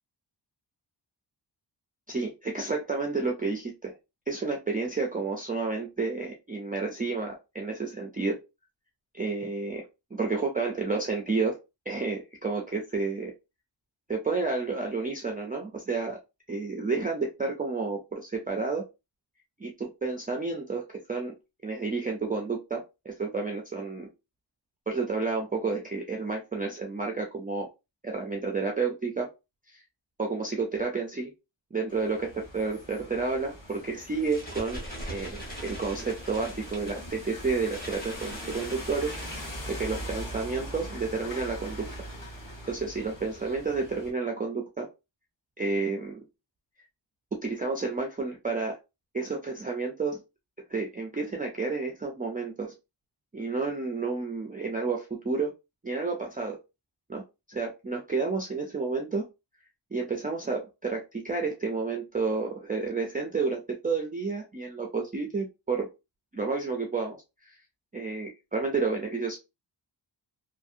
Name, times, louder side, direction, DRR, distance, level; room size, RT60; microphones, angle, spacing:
voice 1, 2.1-3.9 4.3-8.4 9.1-11.6 11.9-13.3 14.1-16.2 16.5-18.8 19.6-20.8 21.1-21.3 21.6-24.1 24.9-27.7 28.0-29.3 29.7-29.8 30.2-31.3 31.7-34.8 35.1-41.8 42.7-44.9 45.6-46.2 47.4-48.8 49.1-50.2 50.7-52.7 53.3-55.5 55.8-56.6 57.1-57.2 57.5-59.3 59.9-65.9 66.3-67.2 67.4-67.6 67.9-69.4, right 4 dB, 20° right, 1 dB, 0.3 m, -30 dB
sound 1, 31.9-44.1, equal, 45° left, 1.2 m, -41 dB
sound 2, 34.1-40.0, equal, 20° left, 1.1 m, -42 dB
2.7 x 2.6 x 2.4 m, 0.26 s
wide cardioid pair, 170°, 45 cm